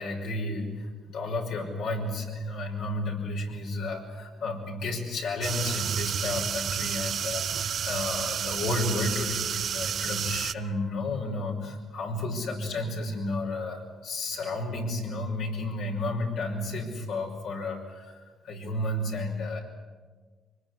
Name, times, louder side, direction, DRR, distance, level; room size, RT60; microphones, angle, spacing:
voice 1, 0.0-19.6, left 2 dB, 80° left, 0 dB, 5.8 m, -32 dB
sound 1, 5.4-10.5, right 8 dB, 60° right, 0.7 m, -30 dB
23.5 x 20.5 x 9.8 m, 1.4 s
cardioid pair, 90°, 0 cm